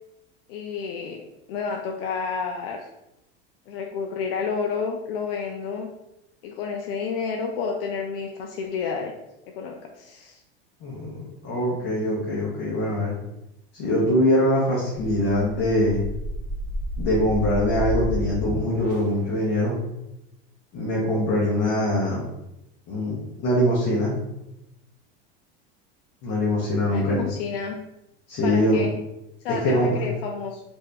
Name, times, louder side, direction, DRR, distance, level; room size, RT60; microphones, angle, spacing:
voice 1, 0.5-2.9 3.7-5.9 6.4-9.1 9.5-10.4 26.8-27.8 28.4-29.0 29.4-30.6, left 5 dB, 75° left, 2 dB, 0.4 m, -30 dB
voice 2, 10.8-13.2 13.7-16.0 17.0-19.8 20.7-22.2 22.9-24.1 26.2-27.3 28.3-28.8 29.6-30.0, left 1 dB, 35° left, -6 dB, 0.8 m, -23 dB
sound 1, 15.0-19.3, right 1 dB, 30° right, 0.4 m, -31 dB
2.7 x 2.6 x 3.3 m, 0.89 s
supercardioid pair, 165°, 29 cm